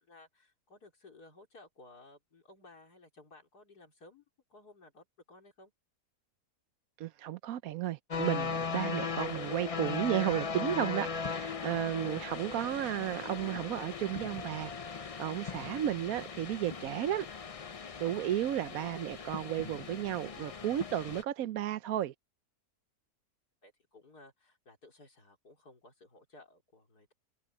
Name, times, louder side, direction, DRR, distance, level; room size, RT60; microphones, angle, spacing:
voice 1, 0.0-4.2 4.5-5.7 23.6-27.1, left 2 dB, 80° left, 4.6 m, -57 dB
voice 2, 7.0-17.3 18.0-22.1, right 12 dB, 70° right, 1.1 m, -33 dB
sound 1, 8.1-21.2, left 5 dB, 60° left, 0.3 m, -38 dB
omnidirectional pair, 1.7 m